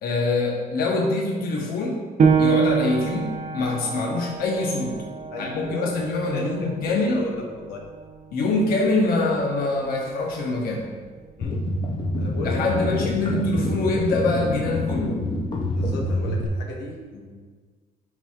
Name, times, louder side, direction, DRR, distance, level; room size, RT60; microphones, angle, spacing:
voice 1, 0.0-2.0 2.4-5.0 5.4-7.2 8.3-10.9 12.4-15.3, left 2 dB, 60° left, 0 dB, 0.9 m, -24 dB
Piano, 2.2-7.4 7.8-7.9 8.5-9.0, right 6 dB, 45° right, 0.7 m, -25 dB
voice 2, 5.3-5.9 6.2-7.8 11.4-11.6 12.2-13.0 15.8-17.4, left 2 dB, 85° left, 0 dB, 1.1 m, -35 dB
sound 1, 11.4-16.5, left 2 dB, 30° left, 0.6 m, -27 dB
9.8 x 4.5 x 2.4 m, 1.5 s
cardioid pair, 110°, 17 cm